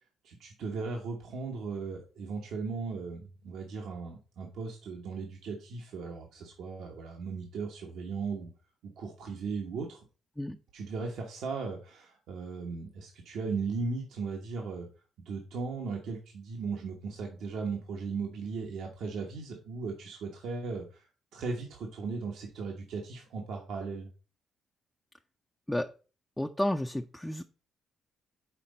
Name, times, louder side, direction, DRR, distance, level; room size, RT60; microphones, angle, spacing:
voice 1, 0.2-8.5 8.8-10.0 10.7-14.9 15.2-21.1 21.3-24.1, right 4 dB, 75° right, 1 dB, 1.1 m, -37 dB
voice 2, 26.4-27.4, left 1 dB, 10° left, 5 dB, 0.4 m, -31 dB
5.8 x 4.0 x 5.2 m, 0.36 s
cardioid pair, 90°, 0 cm